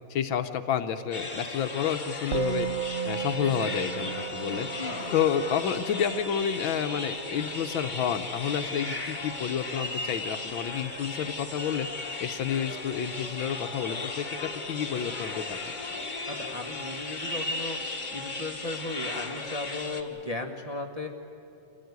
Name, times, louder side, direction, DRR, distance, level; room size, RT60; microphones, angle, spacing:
voice 1, 0.1-2.7 3.0-4.7 5.1-11.9 12.2-15.6, left 8 dB, 70° left, 9 dB, 1.5 m, -30 dB
sound 1, 1.1-20.0, left 3 dB, 25° left, 1.4 m, -36 dB
Musical instrument, 2.3-11.8, right 8 dB, 80° right, 0.6 m, -37 dB
voice 2, 4.8-5.1 16.3-17.8 18.1-21.1, left 2 dB, 20° right, 0 dB, 1.2 m, -36 dB
26.5 x 17.0 x 9.5 m, 2.8 s
omnidirectional pair, 2.3 m